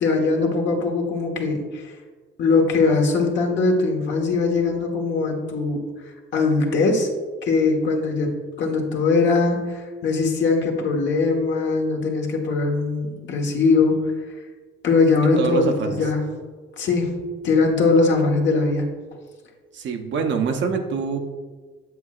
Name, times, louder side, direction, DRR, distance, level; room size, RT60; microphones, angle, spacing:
voice 1, 0.0-1.8 2.4-5.8 6.3-7.1 7.4-8.3 8.6-14.0 14.8-16.2 16.8-18.9, left 3 dB, 70° left, 1 dB, 1.3 m, -21 dB
voice 2, 15.4-16.1 19.7-21.2, right 5 dB, 70° right, 5 dB, 0.8 m, -25 dB
7.8 x 7.4 x 2.4 m, 1.5 s
cardioid pair, 90°, 20 cm